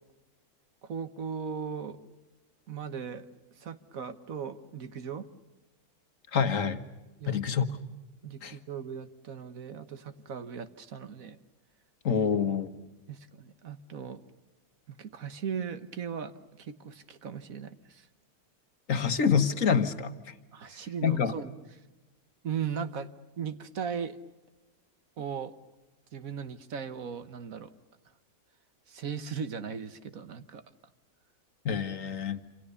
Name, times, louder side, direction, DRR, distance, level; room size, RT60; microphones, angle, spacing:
voice 1, 0.8-2.0 2.7-3.3 3.6-5.3 7.2-7.4 8.2-11.4 13.1-14.2 14.9-18.1 20.5-21.5 22.4-23.1 23.4-24.2 25.2-25.5 26.1-27.7 28.9-30.6, right 7 dB, 65° right, 11 dB, 1.6 m, -38 dB
voice 2, 6.3-6.8 7.3-7.8 8.4-8.6 12.0-12.8 18.9-20.3 21.0-21.3 31.6-32.4, left 6 dB, 60° left, 9 dB, 1.6 m, -27 dB
27.5 x 27.5 x 6.8 m, 1.1 s
omnidirectional pair, 1.6 m